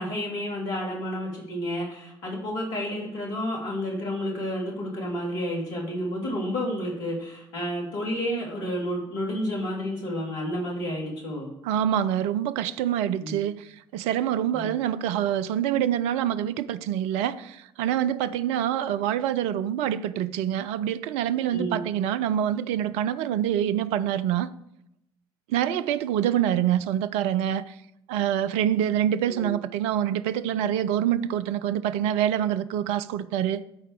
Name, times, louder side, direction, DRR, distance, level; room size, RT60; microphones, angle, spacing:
voice 1, 0.0-11.5 13.2-13.3 14.5-14.7 21.5-21.9 29.4-29.5, equal, 65° left, 3.0 m, -30 dB
voice 2, 11.6-24.5 25.5-27.8 28.1-33.6, right 10 dB, 55° right, 0.4 m, -26 dB
12.0 x 4.5 x 4.7 m
figure-of-eight pair, 55°, 12 cm